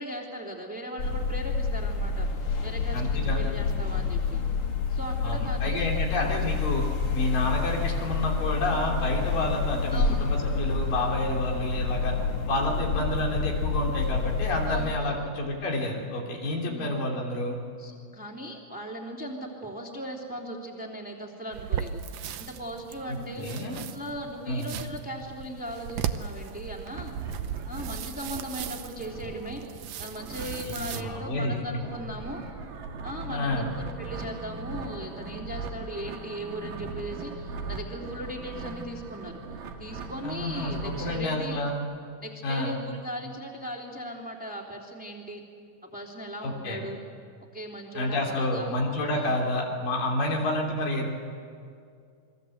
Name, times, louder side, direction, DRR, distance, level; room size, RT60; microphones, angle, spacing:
voice 1, 0.0-2.3 2.6-4.4 4.9-6.4 9.9-10.3 14.6-15.3 16.6-16.9 17.8-27.1 27.7-32.4 33.0-39.4 39.8-41.6 42.2-45.4 45.8-47.0 47.5-48.7 49.1-49.4 50.2-50.4, right 1 dB, 5° right, -1 dB, 2.7 m, -38 dB
sound 1, 1.0-15.0, left 4 dB, 45° left, 2.1 m, -28 dB
voice 2, 2.9-3.4 5.2-6.8 7.1-12.1 12.5-17.6 23.1-23.8 24.5-24.7 30.9-31.6 33.3-33.7 40.2-41.8 42.4-42.7 46.4-46.8 47.9-51.1, left 1 dB, 85° left, -1 dB, 5.1 m, -29 dB
sound 2, 21.5-31.0, right 9 dB, 70° right, 1.7 m, -37 dB
sound 3, 26.9-41.2, right 3 dB, 90° right, 3.7 m, -39 dB
28.5 x 22.5 x 8.0 m, 2.3 s
omnidirectional pair, 3.8 m